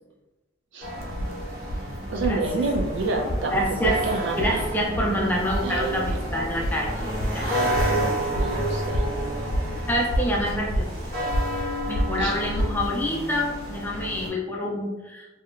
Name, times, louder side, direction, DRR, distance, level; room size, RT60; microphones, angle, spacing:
sound 1, 0.8-14.3, right 1 dB, 55° right, 1.0 m, -31 dB
sound 2, 1.0-12.9, equal, 80° left, 0.4 m, -30 dB
voice 1, 2.1-4.4 5.6-6.2 7.3-9.8 12.2-12.4, right 2 dB, 75° right, 0 dB, 0.5 m, -29 dB
voice 2, 3.5-4.0 4.4-6.9 7.3-7.5 9.9-11.1 11.9-15.3, equal, 10° left, -2 dB, 0.3 m, -27 dB
2.8 x 2.1 x 2.4 m, 1.1 s
head